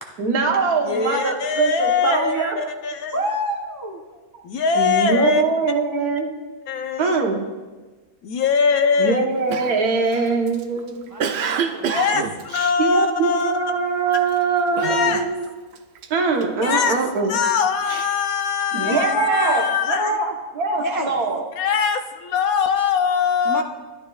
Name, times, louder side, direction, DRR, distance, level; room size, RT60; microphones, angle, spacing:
voice 1, 0.2-2.6 4.7-6.3 7.0-7.4 9.0-11.0 12.8-15.5 16.1-17.4 18.7-21.4, right 4 dB, 80° right, 2 dB, 1.6 m, -22 dB
voice 2, 0.8-3.1 4.4-5.4 6.7-7.2 8.2-9.3 11.9-13.5 14.8-15.2 16.6-16.9 17.3-20.2 21.6-23.6, left 6 dB, 75° left, 6 dB, 1.2 m, -22 dB
voice 3, 3.1-4.0 11.1-12.2 18.7-19.7 20.8-21.2 23.5-23.6, right 1 dB, 30° left, 1 dB, 0.4 m, -28 dB
Cough, 9.5-13.6 14.1-14.4 14.8-15.5 15.7-16.9 17.4-18.9, right 6 dB, 60° right, 0.7 m, -29 dB
14.0 x 10.5 x 2.3 m, 1.3 s
omnidirectional pair, 1.6 m